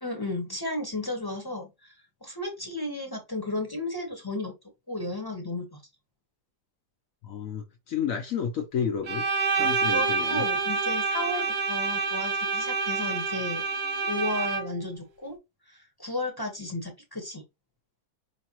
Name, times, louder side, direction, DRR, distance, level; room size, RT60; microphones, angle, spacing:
voice 1, 0.0-1.9 2.2-4.6 4.9-5.8 9.9-13.6 14.0-15.4 15.7-17.4, left 2 dB, 15° left, 0.9 m, -33 dB
voice 2, 7.3-9.2 9.6-10.5, left 7 dB, 65° left, 0.9 m, -31 dB
Bowed string instrument, 9.0-14.9, right 4 dB, 45° right, 0.9 m, -27 dB
5.2 x 2.8 x 2.9 m
omnidirectional pair, 2.0 m